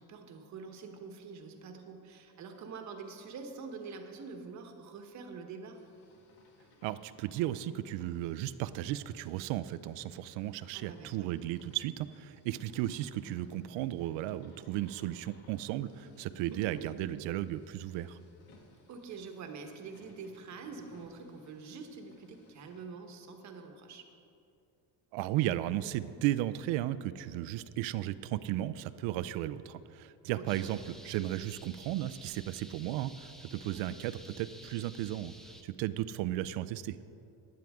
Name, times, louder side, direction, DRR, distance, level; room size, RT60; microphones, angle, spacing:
voice 1, 0.0-5.8 10.7-11.3 16.5-16.9 18.9-24.1 30.4-30.7 33.7-33.9, right 4 dB, 40° right, 4 dB, 1.2 m, -46 dB
sound 1, 5.7-22.9, left 2 dB, 65° left, 2.1 m, -63 dB
voice 2, 6.8-18.2 25.1-35.3 35.6-37.0, right 14 dB, 80° right, 14 dB, 0.6 m, -35 dB
sound 2, 30.5-35.6, equal, ahead, 0.4 m, -53 dB
15.5 x 10.5 x 3.6 m, 2.6 s
cardioid pair, 170°, 43 cm